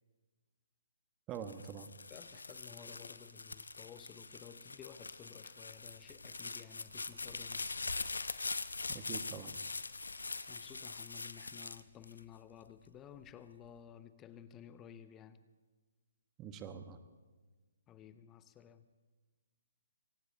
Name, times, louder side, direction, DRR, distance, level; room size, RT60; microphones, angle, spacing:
sound 1, 1.3-12.7 13.2-13.8, left 3 dB, 80° left, 0.7 m, -43 dB
voice 1, 1.3-1.9 8.9-9.6 16.4-17.0, right 7 dB, 20° right, 1.2 m, -45 dB
voice 2, 2.1-7.8 10.1-15.4 17.9-18.9, left 9 dB, 20° left, 0.7 m, -55 dB
24.0 x 18.0 x 2.8 m
figure-of-eight pair, 135°, 0 cm